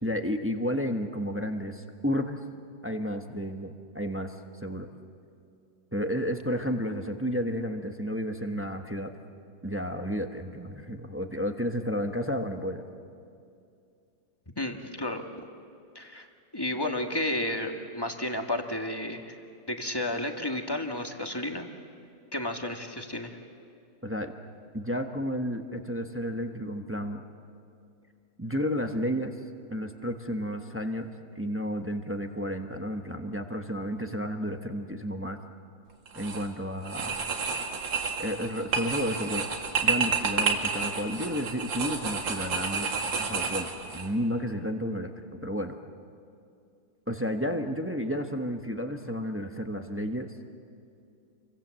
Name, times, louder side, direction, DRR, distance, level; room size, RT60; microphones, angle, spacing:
voice 1, 0.0-2.4 2.8-4.4 4.6-4.9 5.9-9.1 9.6-12.8 24.0-24.3 24.7-27.2 28.4-29.3 29.7-31.1 31.4-35.4 36.1-37.1 38.2-39.5 39.8-42.9 43.2-45.1 45.4-45.7 47.1-50.3, equal, 10° right, 5 dB, 0.9 m, -31 dB
voice 2, 14.5-15.2 15.9-16.3 16.5-19.3 19.7-21.7 22.3-23.4, left 1 dB, 15° left, 4 dB, 1.5 m, -32 dB
sound 1, 36.1-36.5 36.8-44.1, right 5 dB, 75° right, 2.8 m, -30 dB
28.5 x 24.0 x 7.7 m, 2.5 s
omnidirectional pair, 2.1 m